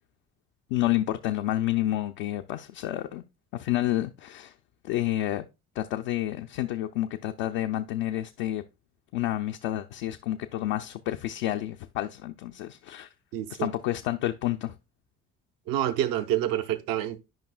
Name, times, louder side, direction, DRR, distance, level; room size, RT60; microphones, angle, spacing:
voice 1, 0.7-3.2 3.5-4.5 4.8-5.5 5.8-8.6 9.1-13.1 13.5-14.8, left 14 dB, 75° left, 0.5 m, -29 dB
voice 2, 13.3-13.7 15.7-17.2, right 12 dB, 70° right, 0.7 m, -27 dB
11.0 x 5.3 x 2.3 m
hypercardioid pair, 45°, 37 cm